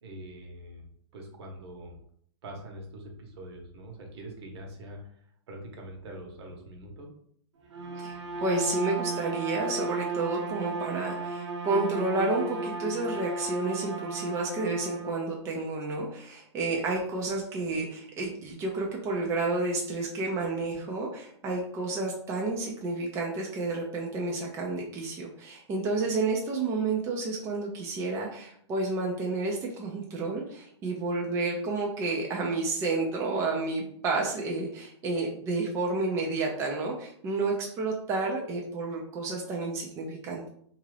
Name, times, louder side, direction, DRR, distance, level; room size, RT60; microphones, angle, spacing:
voice 1, 0.0-0.9 1.1-2.0 2.4-5.0 5.5-7.1, right 1 dB, 60° right, 2 dB, 1.0 m, -43 dB
Bowed string instrument, 7.7-15.2, right 3 dB, 80° right, 0.6 m, -35 dB
voice 2, 8.0-40.5, right 3 dB, 20° right, -1 dB, 0.4 m, -30 dB
2.7 x 2.4 x 3.2 m, 0.64 s
hypercardioid pair, 140°, 15 cm